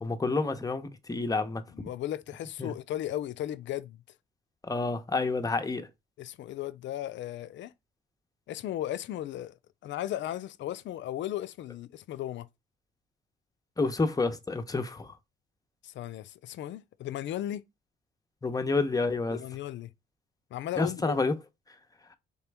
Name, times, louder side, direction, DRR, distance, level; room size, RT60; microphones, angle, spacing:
voice 1, 0.0-1.9 2.6-2.7 4.6-5.9 13.8-15.2 18.4-19.4 20.8-21.4 22.1-22.2, left 3 dB, 20° left, 0.7 m, -29 dB
voice 2, 1.7-4.0 6.2-7.7 8.5-9.6 9.8-12.5 15.8-17.6 19.3-19.9 20.5-21.2, left 12 dB, 70° left, 0.5 m, -36 dB
4.3 x 3.0 x 3.4 m
cardioid pair, 90°, 20 cm